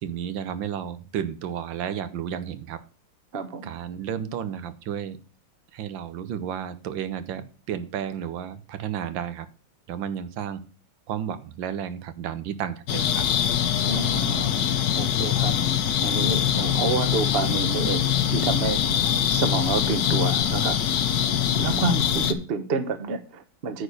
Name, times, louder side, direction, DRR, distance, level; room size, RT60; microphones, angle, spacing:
voice 1, 0.0-2.8 3.6-5.2 5.7-9.5 9.9-10.6 11.1-13.3, right 9 dB, 80° right, 12 dB, 1.6 m, -32 dB
voice 2, 3.3-3.8 13.8-14.6 14.9-15.5 16.0-21.0 21.6-23.8, right 4 dB, 40° right, 10 dB, 1.0 m, -29 dB
sound 1, 12.9-22.3, left 9 dB, 65° left, 1.2 m, -23 dB
9.6 x 4.4 x 6.4 m, 0.37 s
omnidirectional pair, 2.1 m